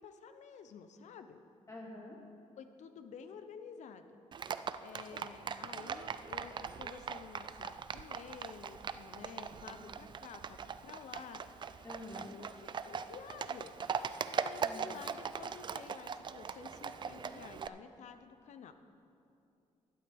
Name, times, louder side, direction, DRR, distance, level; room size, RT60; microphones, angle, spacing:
voice 1, 0.0-1.4 2.6-4.2 4.8-11.4 12.1-13.7 14.3-18.7, left 6 dB, 70° left, 9 dB, 0.7 m, -51 dB
voice 2, 1.7-2.2 9.4-9.8 11.8-12.3 14.6-15.0, left 1 dB, 25° left, -1 dB, 1.2 m, -48 dB
Livestock farm animals working animals, 4.3-17.7, right 6 dB, 40° right, 0.3 m, -41 dB
12.0 x 11.5 x 3.5 m, 2.7 s
cardioid pair, 105°, 12 cm